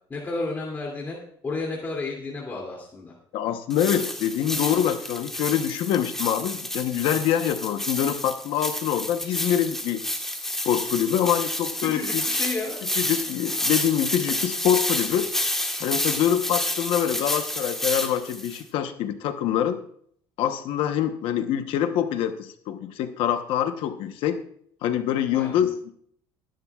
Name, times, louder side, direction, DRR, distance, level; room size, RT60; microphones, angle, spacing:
voice 1, 0.1-1.2 1.4-3.1 11.8-12.8 25.3-25.6, left 3 dB, 20° left, -3 dB, 2.6 m, -32 dB
voice 2, 3.3-10.0 10.6-12.2 13.0-15.3 15.8-19.8 20.4-24.4 24.8-25.9, left 10 dB, 65° left, 7 dB, 1.0 m, -25 dB
sound 1, 3.7-18.6, left 1 dB, 5° left, 1.4 m, -30 dB
21.5 x 10.5 x 2.4 m, 0.63 s
cardioid pair, 145°, 10 cm